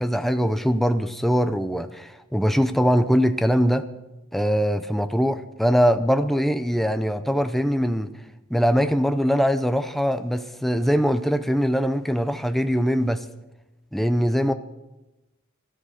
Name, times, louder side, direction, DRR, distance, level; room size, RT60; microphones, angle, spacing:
voice 1, 0.0-3.9 4.3-8.1 8.5-13.2 13.9-14.5, equal, ahead, 0.5 m, -22 dB
14.0 x 12.5 x 6.5 m
head